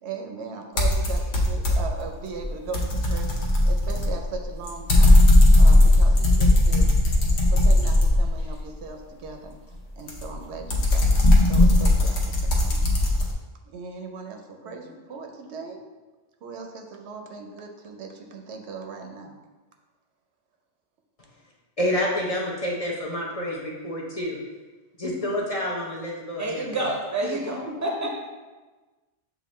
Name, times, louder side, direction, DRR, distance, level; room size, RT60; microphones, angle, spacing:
voice 1, 0.0-5.2 5.6-6.9 7.5-9.6 10.0-11.0 11.4-13.2 13.7-15.8 16.4-19.4 25.0-25.4 27.2-27.8, right 4 dB, 85° right, 3 dB, 0.9 m, -38 dB
sound 1, 0.8-2.0 2.4-8.6 10.1-13.3, left 1 dB, 80° left, 1.0 m, -18 dB
voice 2, 21.8-24.4 25.0-26.9, left 1 dB, 40° left, -3 dB, 0.7 m, -28 dB
voice 3, 26.4-28.1, right 2 dB, 20° right, -1 dB, 0.5 m, -29 dB
6.9 x 2.5 x 3.1 m, 1.2 s
omnidirectional pair, 1.1 m